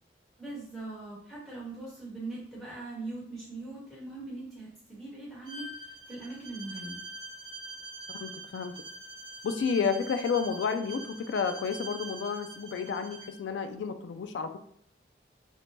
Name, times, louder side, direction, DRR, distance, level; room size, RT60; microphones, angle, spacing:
voice 1, 0.4-7.0, right 2 dB, ahead, -8 dB, 1.0 m, -41 dB
Bowed string instrument, 5.5-13.4, right 2 dB, 25° right, 0.3 m, -44 dB
voice 2, 8.1-8.7 9.4-14.6, left 6 dB, 75° left, 8 dB, 0.3 m, -31 dB
2.8 x 2.1 x 2.9 m, 0.63 s
head